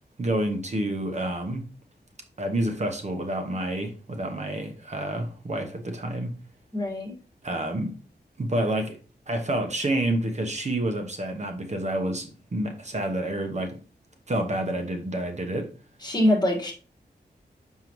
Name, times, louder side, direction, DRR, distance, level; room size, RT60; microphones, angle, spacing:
voice 1, 0.2-1.6 2.4-6.3 7.4-8.0 8.4-9.0 9.3-13.8 14.3-15.7, right 1 dB, 45° right, 1.0 m, -28 dB
voice 2, 6.7-7.1 16.0-16.7, left 1 dB, 25° left, 1.7 m, -23 dB
6.5 x 5.6 x 3.0 m
wide cardioid pair, 110°, 17 cm